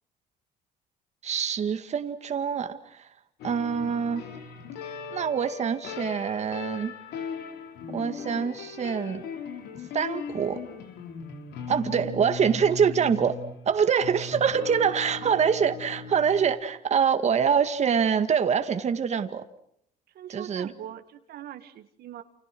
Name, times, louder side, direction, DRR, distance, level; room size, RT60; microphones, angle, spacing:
voice 1, 1.2-3.1 3.4-4.2 5.1-6.9 7.9-9.2 9.9-10.6 11.7-13.4 13.7-19.4 20.3-20.7, right 7 dB, 40° right, 8 dB, 2.0 m, -25 dB
sound 1, 3.4-16.4, left 5 dB, 80° left, 5.0 m, -38 dB
voice 2, 20.1-22.2, right 11 dB, 70° right, 8 dB, 2.1 m, -42 dB
29.5 x 29.5 x 6.2 m, 0.71 s
cardioid pair, 110°, 17 cm